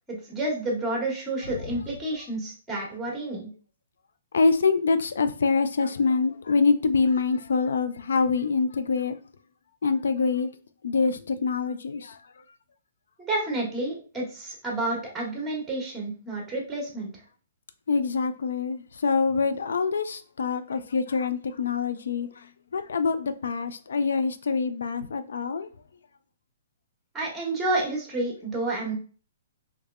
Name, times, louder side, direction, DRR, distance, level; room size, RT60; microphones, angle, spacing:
voice 1, 0.1-3.5 13.2-17.1 27.1-28.9, right 2 dB, 10° right, 1.2 m, -30 dB
voice 2, 4.3-9.2 9.8-10.5 10.8-12.2 17.9-22.3 22.7-25.7, left 4 dB, 85° left, 0.3 m, -25 dB
3.4 x 3.1 x 2.4 m
hypercardioid pair, 150°, 0 cm